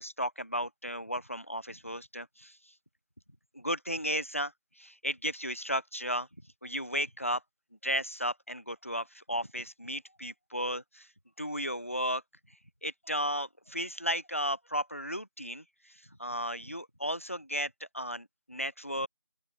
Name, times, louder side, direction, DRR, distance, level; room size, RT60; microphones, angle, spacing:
voice 1, 0.0-2.6 3.5-4.5 4.8-6.3 6.6-7.4 7.8-11.1 11.4-12.2 12.8-15.9 16.2-19.1, equal, 25° left, 0.4 m, -34 dB
open air
figure-of-eight pair, 165°, 16 cm